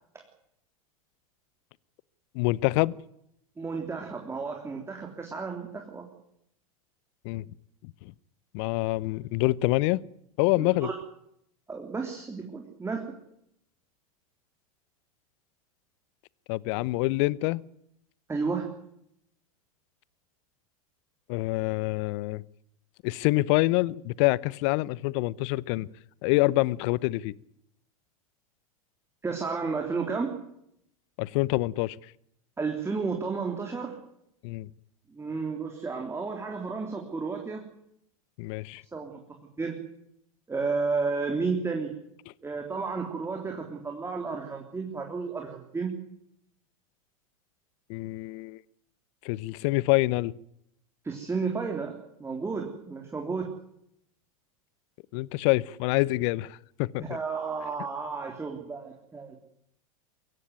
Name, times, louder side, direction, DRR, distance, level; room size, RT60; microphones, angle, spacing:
voice 1, 2.3-3.0 7.2-7.4 7.8-8.1 8.5-10.0 10.4-10.9 16.5-17.6 21.3-22.4 23.0-25.9 26.2-27.3 31.2-32.0 34.4-34.7 38.4-38.8 47.9-48.6 49.2-50.3 55.1-57.2, left 20 dB, 55° left, 0.8 m, -26 dB
voice 2, 3.6-6.1 10.6-10.9 11.7-13.1 18.3-18.7 29.2-30.3 32.6-34.0 35.1-37.7 38.9-39.2 39.6-39.7 40.5-41.9 42.4-45.9 51.0-53.5 57.0-59.4, right 4 dB, 15° right, 3.5 m, -32 dB
23.0 x 16.0 x 9.5 m
hypercardioid pair, 90°, 19 cm